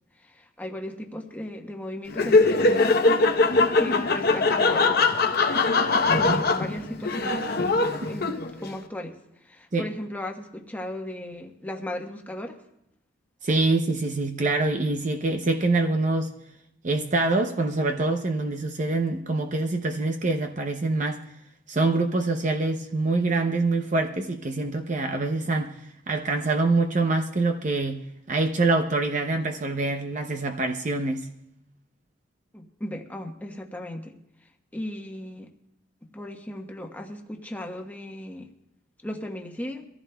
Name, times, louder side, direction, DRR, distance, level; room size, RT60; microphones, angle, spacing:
voice 1, 0.2-3.2 3.7-5.3 6.2-7.5 8.1-9.1 9.4-12.6 32.5-34.1 34.7-35.5 36.1-38.5 39.0-39.8, left 1 dB, 10° left, 2 dB, 1.1 m, -36 dB
Laughter, 2.1-8.7, left 3 dB, 50° left, 0.9 m, -22 dB
voice 2, 6.1-6.4 9.7-9.9 13.4-16.3 16.8-21.2 21.7-25.8 26.1-28.0 28.3-31.3, right 3 dB, 40° right, 4 dB, 0.7 m, -25 dB
24.0 x 15.0 x 2.3 m, 0.82 s
head